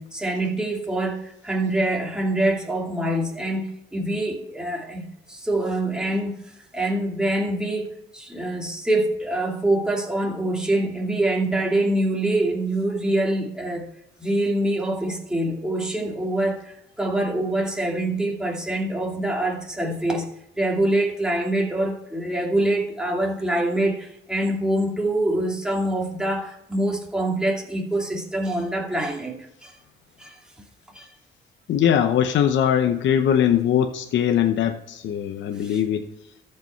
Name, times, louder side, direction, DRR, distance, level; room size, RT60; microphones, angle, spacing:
voice 1, 0.0-6.3 6.7-13.9 14.2-20.3 20.5-29.7 30.2-30.4 30.9-31.1 35.6-35.8, right 1 dB, 5° right, 2.5 m, -25 dB
voice 2, 31.7-36.1, left 9 dB, 70° left, 0.8 m, -21 dB
13.5 x 5.5 x 4.6 m
cardioid pair, 90°, 20 cm